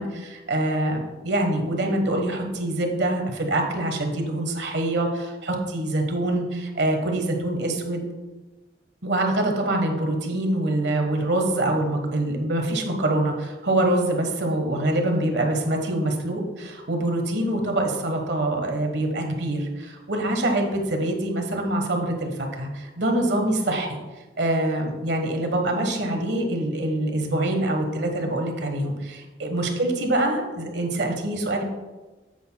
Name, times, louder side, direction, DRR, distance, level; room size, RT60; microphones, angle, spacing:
voice 1, 0.0-8.1 9.0-24.0 24.4-31.6, right 1 dB, 80° right, 3 dB, 1.4 m, -25 dB
9.8 x 8.0 x 2.3 m, 1.2 s
head